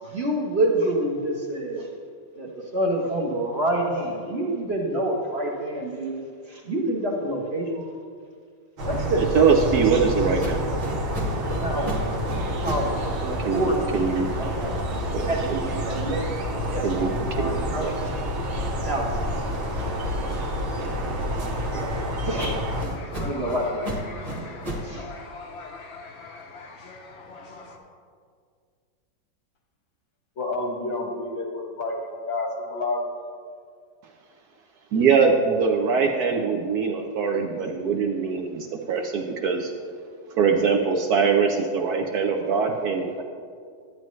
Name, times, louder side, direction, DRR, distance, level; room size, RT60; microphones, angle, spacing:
voice 1, 0.0-1.9 2.4-6.2 6.5-7.9 8.8-9.2 11.5-12.0 12.6-14.0 14.4-14.8 15.2-15.5 15.8-16.4 16.7-18.1 18.6-19.2 19.8-19.9 21.7-21.9 22.2-22.6 23.2-23.8 24.8-25.1, right 1 dB, 40° right, -2 dB, 1.0 m, -27 dB
sound 1, 8.8-22.8, equal, 90° right, 2.0 m, -28 dB
voice 2, 9.2-10.6 13.4-14.3 15.1-15.8 16.8-18.0 34.9-39.7 40.4-43.2, right 5 dB, 65° right, 2 dB, 1.0 m, -23 dB
sound 2, 10.4-13.0 13.3-18.1 18.5-21.8 22.4-25.0, right 1 dB, 20° right, 1.3 m, -36 dB
sound 3, 17.8-27.8, left 3 dB, 55° left, 0.8 m, -43 dB
voice 3, 30.4-33.0, left 2 dB, 80° left, 2 dB, 2.0 m, -29 dB
11.5 x 9.0 x 3.1 m, 2.1 s
omnidirectional pair, 2.1 m